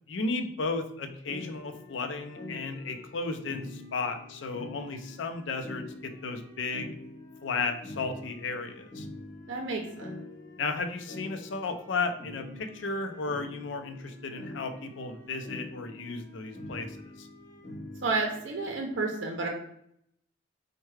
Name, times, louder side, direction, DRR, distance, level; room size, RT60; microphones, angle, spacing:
voice 1, 0.1-6.9 7.4-9.1 10.6-17.3, left 3 dB, 80° left, 7 dB, 0.5 m, -34 dB
sound 1, 1.3-18.7, left 2 dB, 60° left, 1.1 m, -45 dB
voice 2, 9.5-10.1 18.0-19.5, right 3 dB, 80° right, 1 dB, 0.6 m, -31 dB
4.5 x 2.2 x 3.2 m, 0.72 s
head